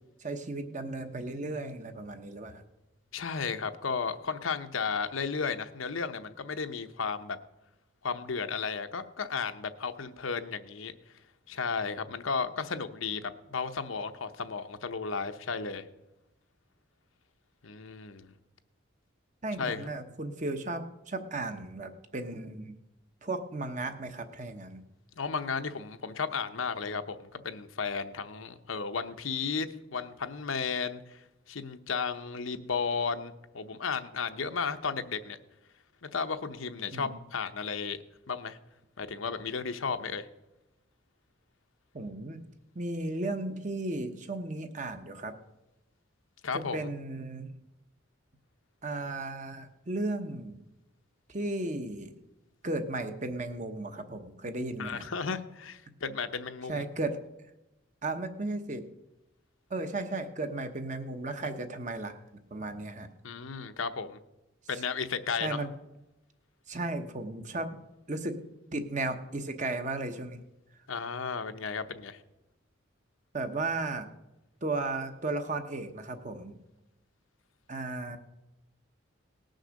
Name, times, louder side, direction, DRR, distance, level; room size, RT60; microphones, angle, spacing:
voice 1, 0.2-2.6 19.4-22.7 23.2-24.8 36.9-37.2 41.9-42.5 42.7-45.3 46.7-47.6 48.8-50.6 51.3-52.1 52.6-55.1 56.7-57.2 58.0-58.8 59.7-62.2 62.5-63.1 65.4-65.7 66.7-67.8 68.1-68.4 68.7-70.4 73.3-74.1 74.6-76.6 77.7-78.2, right 2 dB, 35° right, 8 dB, 1.0 m, -35 dB
voice 2, 3.1-7.4 8.0-10.9 11.5-15.9 17.6-18.3 19.6-19.9 25.2-35.4 36.0-38.0 38.3-38.6 39.0-40.3 46.4-46.9 54.8-56.8 63.2-64.2 64.7-65.6 70.9-72.2, left 5 dB, 85° left, 8 dB, 0.8 m, -34 dB
18.5 x 6.5 x 6.5 m, 0.96 s
head